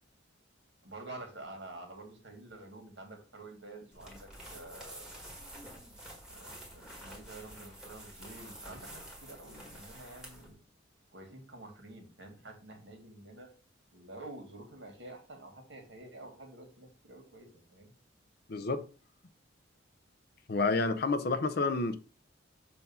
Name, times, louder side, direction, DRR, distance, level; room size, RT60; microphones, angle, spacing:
voice 1, 0.8-5.2 6.3-10.6 11.1-13.5 13.9-17.9, right 2 dB, 60° right, 1.8 m, -49 dB
sound 1, 3.9-10.5, right 1 dB, 5° right, 1.6 m, -49 dB
voice 2, 18.5-18.8 20.5-22.0, left 3 dB, 50° left, 0.5 m, -29 dB
6.9 x 2.6 x 5.5 m
head